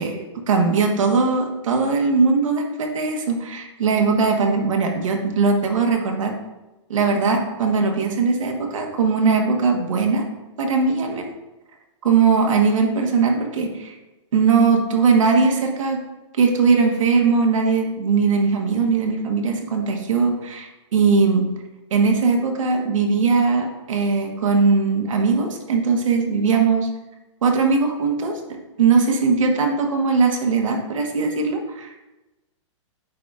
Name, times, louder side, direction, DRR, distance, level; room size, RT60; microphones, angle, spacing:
voice 1, 0.0-6.3 6.9-10.2 10.6-11.3 12.0-13.9 14.3-16.0 16.3-21.5 21.9-26.9 27.4-28.4 28.8-32.1, right 4 dB, 90° right, 2 dB, 1.3 m, -20 dB
8.4 x 5.0 x 2.4 m, 1.0 s
hypercardioid pair, 165°, 16 cm